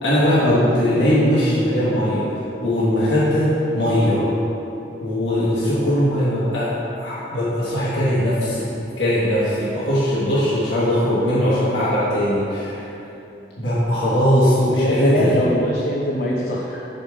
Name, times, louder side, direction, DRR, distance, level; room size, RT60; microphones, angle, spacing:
voice 1, 0.0-2.3 2.6-4.3 5.0-8.7 9.0-12.8 13.6-15.3, equal, 80° left, -9 dB, 1.3 m, -20 dB
voice 2, 14.3-16.9, left 1 dB, 55° left, -4 dB, 0.7 m, -22 dB
6.4 x 5.3 x 4.7 m, 2.9 s
head